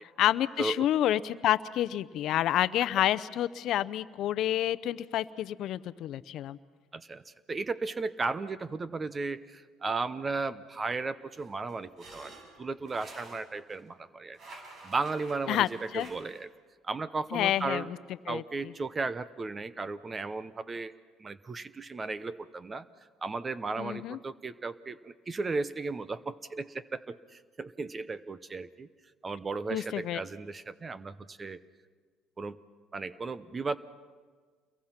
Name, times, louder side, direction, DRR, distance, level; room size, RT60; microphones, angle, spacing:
voice 1, 0.2-6.6 15.5-15.7 15.9-16.1 17.3-17.8 18.3-18.4 23.8-24.2 29.7-30.2, left 12 dB, 65° left, 15 dB, 0.7 m, -28 dB
voice 2, 6.9-14.4 14.8-16.5 16.8-17.9 18.3-20.9 21.2-22.9 23.2-28.9 29.2-31.6 32.4-32.6 32.9-33.8, right 3 dB, 25° right, 15 dB, 0.8 m, -35 dB
sound 1, 11.3-13.8 14.3-16.4, right 2 dB, 55° right, 7.3 m, -50 dB
28.5 x 22.5 x 5.9 m, 1.5 s
supercardioid pair, 95°, 0 cm